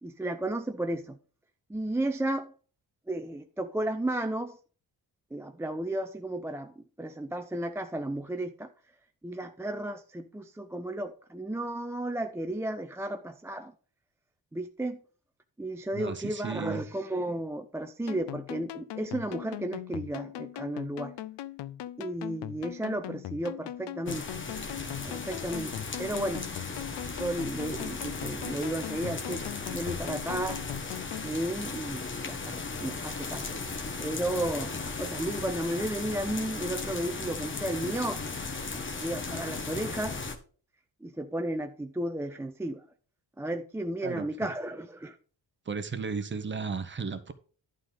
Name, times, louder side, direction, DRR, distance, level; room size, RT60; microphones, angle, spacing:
voice 1, 0.0-1.2 1.7-2.5 3.1-4.6 5.3-8.7 9.2-13.7 14.5-15.0 15.6-21.1 22.0-24.3 25.0-26.5 27.2-30.6 31.2-33.6 34.0-34.7 35.0-38.2 38.7-40.2 41.0-42.8 43.4-45.2, right 1 dB, 5° right, 0.4 m, -33 dB
voice 2, 15.9-16.9 44.0-44.3 45.7-47.3, right 5 dB, 25° right, 0.9 m, -34 dB
sound 1, 18.1-31.3, left 13 dB, 75° left, 0.6 m, -40 dB
sound 2, 24.1-40.4, left 4 dB, 25° left, 1.2 m, -36 dB
11.5 x 3.9 x 6.7 m
wide cardioid pair, 175°, 43 cm